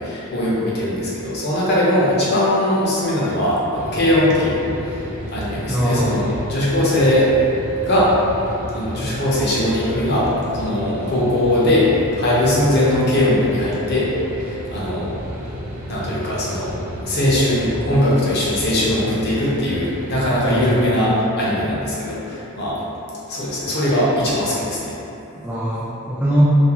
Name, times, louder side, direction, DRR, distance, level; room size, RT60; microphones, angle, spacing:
voice 1, 0.0-4.6 4.9-5.0 5.3-7.3 7.8-8.1 8.7-10.3 10.5-11.9 12.2-14.1 14.4-15.1 15.9-16.7 17.0-22.8 23.3-24.9, left 1 dB, 50° left, -8 dB, 0.7 m, -20 dB
sound 1, 3.7-20.9, equal, 75° right, 0.6 m, -32 dB
voice 2, 5.7-6.3 20.4-20.9 25.4-26.4, equal, 10° right, -10 dB, 0.3 m, -21 dB
2.8 x 2.4 x 2.8 m, 2.9 s
head